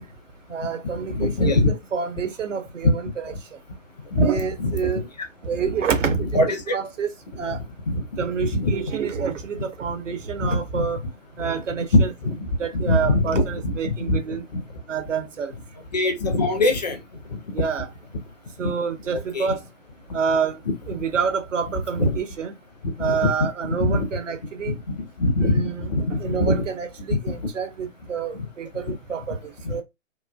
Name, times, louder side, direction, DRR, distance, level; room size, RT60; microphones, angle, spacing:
voice 1, 0.5-3.3 4.1-5.0 5.4-6.3 6.7-7.1 7.4-7.6 8.2-11.0 11.4-12.1 12.6-14.4 14.9-15.5 17.5-17.9 18.6-19.6 20.1-20.6 20.9-22.5 23.0-24.7 25.4-29.8, right 6 dB, 70° right, 0.7 m, -28 dB
voice 2, 1.1-1.7 4.1-4.3 4.6-4.7 6.3-6.6 7.9-8.0 8.5-8.7 10.4-10.9 11.9-12.3 12.7-13.7 14.1-14.2 14.5-14.6 15.9-17.0 19.1-19.5 22.0-22.1 23.0-23.2 23.8-24.0 24.7-24.8 25.2-25.6 25.9-26.6 29.7-29.8, left 1 dB, 35° left, 0.5 m, -21 dB
3.1 x 2.1 x 2.3 m
figure-of-eight pair, 135°, 39 cm